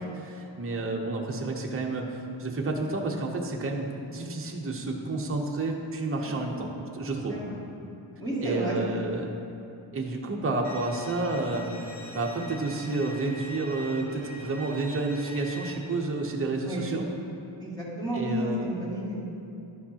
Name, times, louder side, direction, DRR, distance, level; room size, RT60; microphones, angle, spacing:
voice 1, 0.2-7.4 8.4-9.3 9.9-17.1 18.1-18.7, right 3 dB, 25° right, 0 dB, 0.8 m, -30 dB
voice 2, 6.2-6.5 7.3-7.6 8.2-8.8 16.6-16.8 17.6-19.2, equal, 10° left, -8 dB, 1.8 m, -32 dB
Bowed string instrument, 10.6-15.7, left 1 dB, 55° left, 1.3 m, -43 dB
11.5 x 7.1 x 2.8 m, 2.7 s
wide cardioid pair, 140°, 48 cm